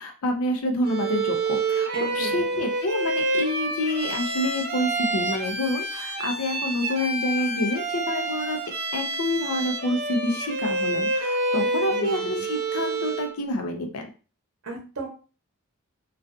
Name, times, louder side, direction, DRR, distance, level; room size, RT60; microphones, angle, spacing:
voice 1, 0.0-8.6 8.9-14.1, left 1 dB, 80° left, 4 dB, 0.5 m, -28 dB
Bowed string instrument, 0.8-13.4, right 2 dB, 45° right, 0.4 m, -28 dB
voice 2, 1.9-2.6 11.6-12.4 14.6-15.1, right 2 dB, 65° right, -1 dB, 0.8 m, -35 dB
2.4 x 2.3 x 2.4 m, 0.35 s
head